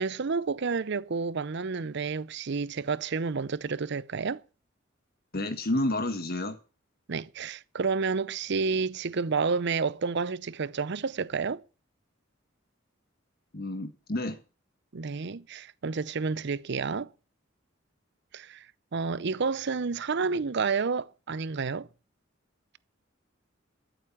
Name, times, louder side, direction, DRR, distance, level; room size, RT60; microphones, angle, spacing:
voice 1, 0.0-4.4 7.1-11.6 14.9-17.1 18.3-18.7 18.9-21.9, right 4 dB, 60° right, 0.6 m, -30 dB
voice 2, 5.3-6.6 13.5-14.4, left 1 dB, 50° left, 1.5 m, -30 dB
13.5 x 8.0 x 7.2 m
head